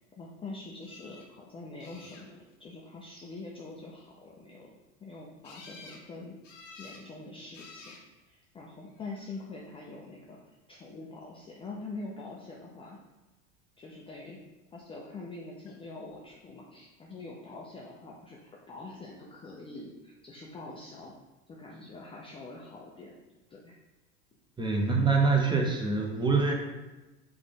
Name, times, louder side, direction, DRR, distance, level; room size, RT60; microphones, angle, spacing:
voice 1, 0.2-4.7 5.0-6.4 6.8-8.0 8.3-10.4 10.7-13.0 13.8-14.4 14.7-21.1 21.5-23.1 23.5-23.7, left 3 dB, 15° left, -3 dB, 0.4 m, -44 dB
sound 1, 0.8-1.3 1.8-2.5 5.4-6.0 6.4-7.1 7.5-8.0 9.0-9.4 15.7-15.8 16.1-16.2, left 3 dB, 80° left, 0.8 m, -51 dB
voice 2, 24.6-26.5, right 4 dB, 10° right, 0 dB, 0.8 m, -25 dB
4.8 x 2.5 x 3.6 m, 1.1 s
hypercardioid pair, 80°, 38 cm